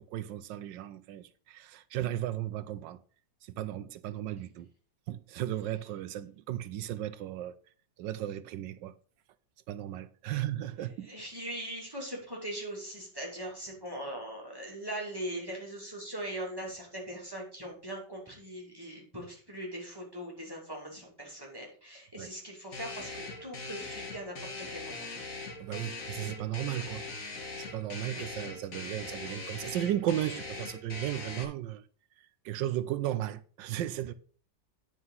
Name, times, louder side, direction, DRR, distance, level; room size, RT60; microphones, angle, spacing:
voice 1, 0.0-3.0 3.4-4.7 5.1-7.5 8.0-8.9 9.7-11.1 22.2-22.3 25.6-27.0 27.6-31.8 32.4-34.1, right 12 dB, 80° right, 1.2 m, -35 dB
voice 2, 11.0-25.0 28.1-28.2, right 1 dB, 10° right, 2.6 m, -40 dB
sound 1, 22.7-31.4, left 3 dB, 50° left, 1.7 m, -41 dB
9.5 x 4.9 x 5.5 m
omnidirectional pair, 2.0 m